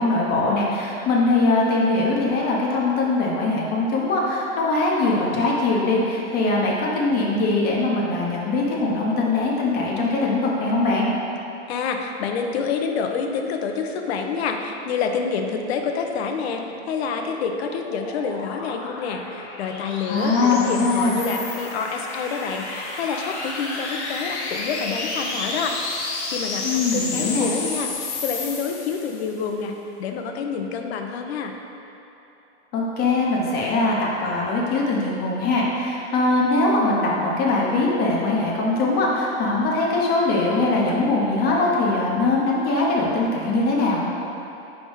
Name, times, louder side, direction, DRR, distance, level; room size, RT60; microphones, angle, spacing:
voice 1, 0.0-11.1 20.1-21.2 26.6-27.5 32.7-44.0, left 2 dB, 30° left, -3 dB, 0.9 m, -21 dB
voice 2, 11.7-16.6 16.9-25.7 26.2-29.7 30.0-31.5, left 5 dB, 70° left, 4 dB, 0.7 m, -28 dB
sound 1, 16.7-29.4, left 3 dB, 85° left, 1.1 m, -32 dB
4.8 x 3.5 x 5.5 m, 2.9 s
supercardioid pair, 145°, 33 cm